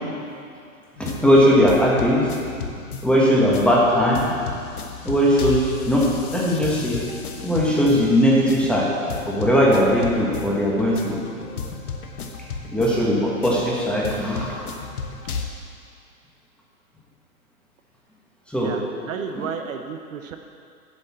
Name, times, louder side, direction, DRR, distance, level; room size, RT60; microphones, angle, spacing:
sound 1, 1.0-15.5, left 5 dB, 80° left, 1.1 m, -34 dB
voice 1, 1.0-2.3 3.0-4.3 5.0-6.0 6.3-7.0 7.4-8.9 9.3-11.2 12.7-14.5 18.5-18.7, equal, ahead, -5 dB, 1.3 m, -19 dB
voice 2, 18.6-20.4, right 7 dB, 60° right, 5 dB, 0.8 m, -32 dB
8.2 x 5.3 x 7.4 m, 2.4 s
hypercardioid pair, 130°, 43 cm